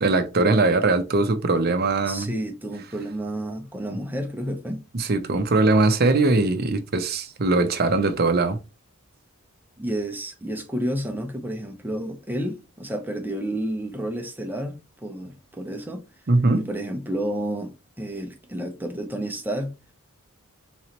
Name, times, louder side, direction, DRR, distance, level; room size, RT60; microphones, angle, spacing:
voice 1, 0.0-2.3 4.9-8.6 16.3-16.6, right 3 dB, 45° right, 0.6 m, -21 dB
voice 2, 2.0-4.8 9.8-16.0 16.6-19.7, right 1 dB, 10° right, 0.8 m, -30 dB
3.9 x 3.1 x 2.9 m
head